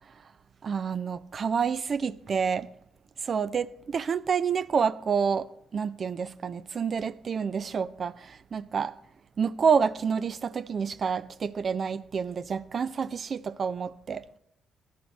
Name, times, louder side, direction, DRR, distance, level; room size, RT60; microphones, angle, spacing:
voice 1, 0.6-2.7 3.2-9.0 9.4-14.4, right 6 dB, 45° right, 0.3 m, -28 dB
15.0 x 11.0 x 3.1 m
cardioid pair, 90°, 0 cm